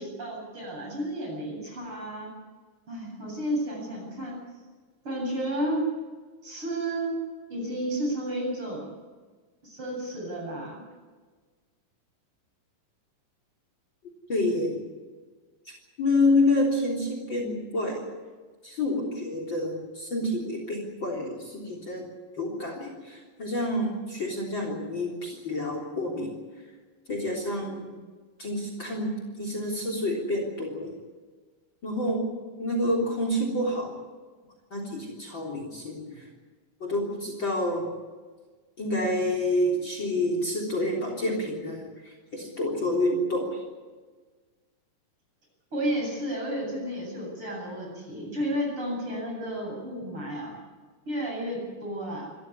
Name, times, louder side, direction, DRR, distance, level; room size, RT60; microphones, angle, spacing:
voice 1, 0.0-2.3 2.9-4.4 5.0-5.9 6.4-7.2 7.5-8.9 9.6-10.8 45.7-50.5 51.1-52.3, right 1 dB, 40° right, -1 dB, 9.0 m, -32 dB
voice 2, 14.3-14.8 16.0-18.0 18.6-22.1 22.4-26.3 27.1-27.9 28.4-30.9 31.8-32.3 32.6-33.9 34.7-36.2 36.8-37.9 38.8-41.8 42.3-43.6, left 1 dB, 35° left, 2 dB, 4.2 m, -28 dB
26.0 x 14.5 x 9.7 m, 1.4 s
omnidirectional pair, 3.8 m